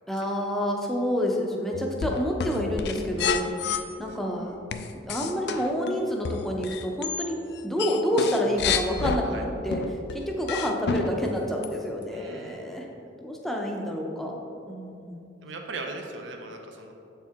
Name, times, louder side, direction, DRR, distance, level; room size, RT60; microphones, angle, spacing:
voice 1, 0.1-4.6 4.9-7.4 7.6-9.8 10.1-12.9 13.2-14.4 14.7-15.3, equal, ahead, -1 dB, 0.6 m, -28 dB
sound 1, 1.7-3.8 4.7-7.3 7.6-9.2 9.7-11.3 11.6-11.7, left 6 dB, 60° left, 0.3 m, -29 dB
voice 2, 12.1-12.7 15.4-16.9, right 3 dB, 75° right, 3 dB, 0.6 m, -39 dB
7.7 x 4.4 x 3.5 m, 2.7 s
head